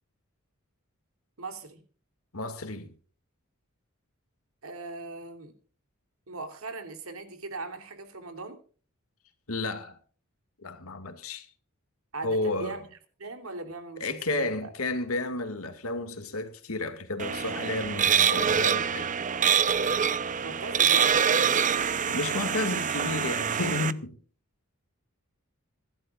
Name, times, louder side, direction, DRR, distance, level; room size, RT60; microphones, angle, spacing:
voice 1, 1.4-1.8 4.6-5.5 6.3-8.6 12.1-12.9 13.2-14.7 20.4-21.3, right 3 dB, 85° right, 3.2 m, -39 dB
voice 2, 2.3-2.9 9.5-10.0 10.6-11.5 12.2-12.8 14.0-19.2 22.1-24.2, left 2 dB, 80° left, 2.1 m, -32 dB
sound 1, 17.2-23.9, right 7 dB, 35° right, 0.7 m, -25 dB
26.5 x 12.0 x 2.4 m
head